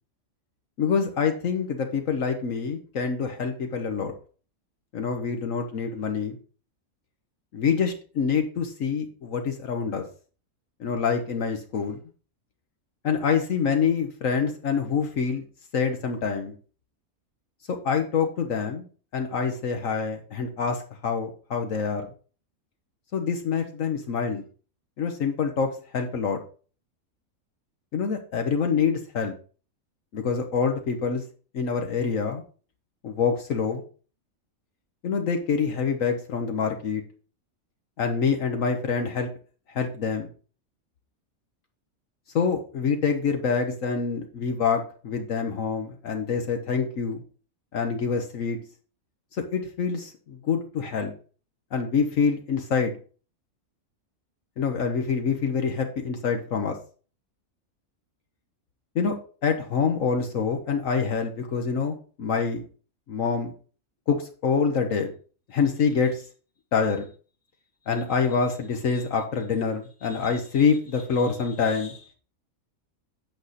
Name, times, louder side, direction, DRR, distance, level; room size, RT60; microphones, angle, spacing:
voice 1, 0.8-4.1 4.9-6.4 7.5-10.0 10.8-12.0 13.0-15.4 15.7-16.5 17.8-18.9 19.1-22.1 23.1-24.4 25.0-26.4 27.9-29.3 30.1-31.2 31.5-32.4 33.0-33.8 35.0-37.0 38.0-39.3 39.7-40.3 42.3-47.2 47.7-48.6 49.3-51.1 51.7-52.9 54.6-56.7 58.9-59.1 59.4-62.6 63.1-63.5 64.1-65.1 65.5-66.2 66.7-67.1 67.9-72.1, left 5 dB, 65° left, 4 dB, 1.4 m, -26 dB
8.6 x 6.5 x 4.1 m, 0.39 s
omnidirectional pair, 1.5 m